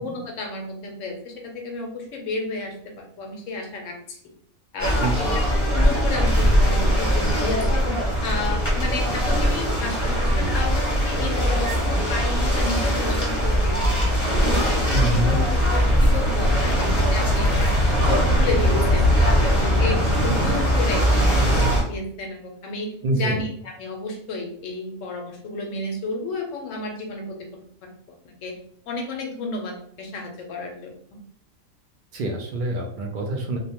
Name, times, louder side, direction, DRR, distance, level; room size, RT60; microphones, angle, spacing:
voice 1, 0.0-4.2 4.7-7.9 8.2-14.0 14.4-17.7 18.0-27.4 28.4-28.5 28.9-30.9, left 3 dB, 75° left, 2 dB, 0.9 m, -32 dB
sound 1, 4.8-21.8, equal, 15° left, 0.7 m, -21 dB
voice 2, 5.0-5.4 14.9-15.4 23.0-23.4 32.1-33.6, right 1 dB, 80° right, 1 dB, 0.4 m, -25 dB
sound 2, 13.5-19.4, left 1 dB, 55° right, 0.9 m, -26 dB
2.6 x 2.1 x 2.8 m, 0.64 s
omnidirectional pair, 1.4 m